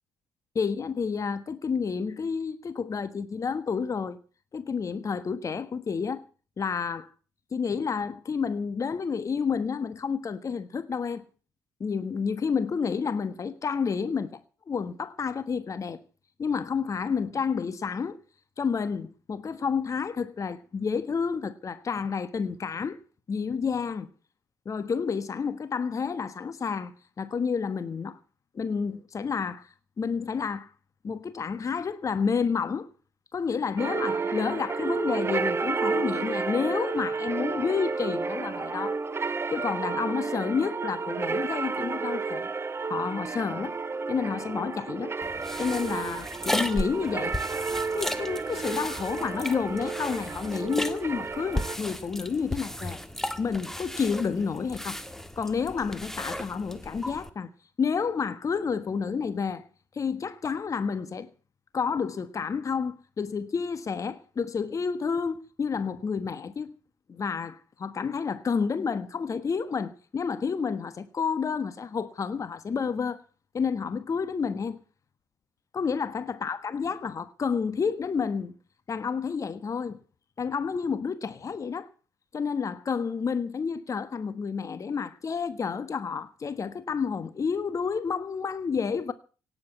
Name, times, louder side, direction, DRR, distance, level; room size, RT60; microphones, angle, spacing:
voice 1, 0.5-4.2 4.5-6.3 6.6-7.1 7.5-11.2 11.8-14.4 14.7-16.0 16.4-18.2 18.6-23.0 23.3-24.1 24.6-28.2 28.5-29.7 30.0-30.7 31.0-32.9 33.3-39.0 39.5-42.5 42.9-43.8 44.1-45.1 45.6-47.4 47.9-53.0 53.4-55.0 55.4-57.5 57.8-59.7 59.9-61.3 61.7-66.7 67.1-73.2 73.5-74.8 75.7-78.5 78.9-80.0 80.4-81.9 82.3-89.1, left 5 dB, 35° left, 1.3 m, -30 dB
sound 1, 33.8-51.8, right 4 dB, 25° right, 1.1 m, -31 dB
sound 2, 45.2-57.3, left 1 dB, 5° left, 1.7 m, -35 dB
17.5 x 7.9 x 9.5 m
figure-of-eight pair, 50°, 9 cm